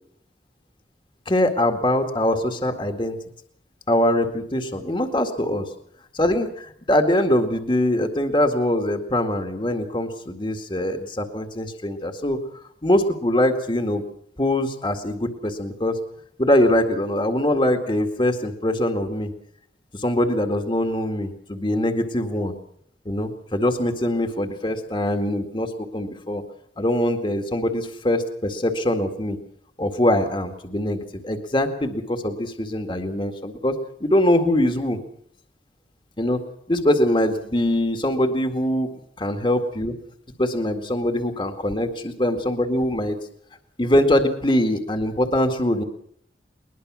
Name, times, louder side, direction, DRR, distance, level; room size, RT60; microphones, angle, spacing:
voice 1, 1.3-3.2 3.9-5.7 6.1-12.4 12.8-14.0 14.4-16.0 16.4-19.3 19.9-22.5 23.1-26.4 26.8-29.4 29.8-35.0 36.2-36.4 36.7-38.9 39.2-39.9 40.4-41.9 42.2-43.2 43.8-45.8, left 1 dB, 30° left, 6 dB, 2.0 m, -23 dB
21.5 x 21.0 x 6.3 m, 0.66 s
head